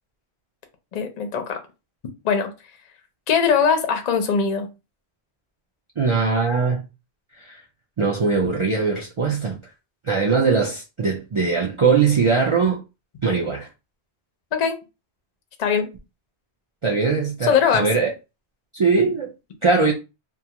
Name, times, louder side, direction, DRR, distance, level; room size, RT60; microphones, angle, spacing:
voice 1, 0.9-1.6 2.2-2.5 3.3-4.7 14.5-14.8 15.6-15.9 17.4-17.9, left 6 dB, 50° left, 0.5 m, -21 dB
voice 2, 6.0-6.8 7.3-7.6 8.0-9.6 10.0-12.8 13.2-13.7 16.8-18.1 18.7-19.3 19.6-19.9, right 4 dB, 55° right, 0.3 m, -21 dB
2.3 x 2.3 x 2.8 m
omnidirectional pair, 1.1 m